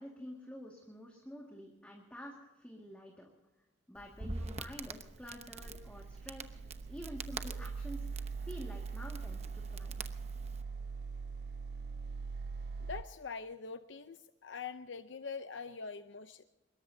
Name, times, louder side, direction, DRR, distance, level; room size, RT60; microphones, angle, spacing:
voice 1, 0.0-3.3 3.9-6.6 6.9-10.0, equal, 5° left, -1 dB, 2.0 m, -49 dB
Crackle, 4.0-10.6, right 3 dB, 35° right, 0.9 m, -46 dB
sound 1, 5.5-13.0, right 4 dB, 55° right, 0.4 m, -42 dB
voice 2, 12.8-16.4, left 5 dB, 80° left, 9 dB, 0.7 m, -44 dB
24.0 x 21.5 x 2.8 m, 1.0 s
head